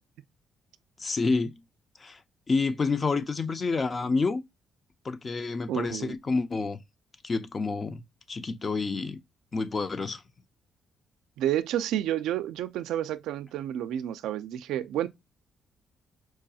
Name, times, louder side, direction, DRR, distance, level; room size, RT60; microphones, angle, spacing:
voice 1, 1.0-1.6 2.0-2.2 2.5-4.4 5.0-6.8 7.2-8.0 8.3-9.2 9.5-10.2, left 4 dB, 35° left, 0.5 m, -28 dB
voice 2, 5.7-6.2 11.4-15.1, right 11 dB, 85° right, 0.3 m, -30 dB
4.6 x 2.3 x 2.7 m
cardioid pair, 90°, 0 cm